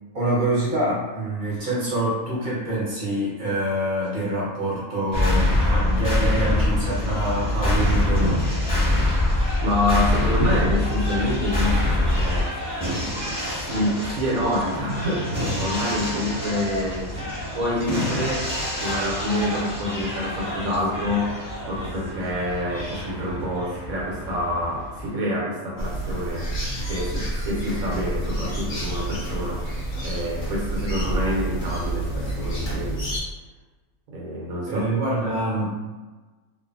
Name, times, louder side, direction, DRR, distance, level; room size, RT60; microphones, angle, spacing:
voice 1, 0.1-8.5 34.7-35.8, right 1 dB, 40° right, -8 dB, 0.9 m, -25 dB
sound 1, 5.1-25.1, left 1 dB, 5° right, 0.9 m, -25 dB
voice 2, 9.6-12.5 13.0-13.4 13.7-18.5 18.8-21.3 21.6-26.5 26.9-29.6 30.0-33.1 34.1-34.8, left 1 dB, 75° right, -4 dB, 1.2 m, -27 dB
sound 2, 25.8-33.2, right 1 dB, 45° left, 0.7 m, -29 dB
2.5 x 2.5 x 2.5 m, 1.3 s
omnidirectional pair, 1.5 m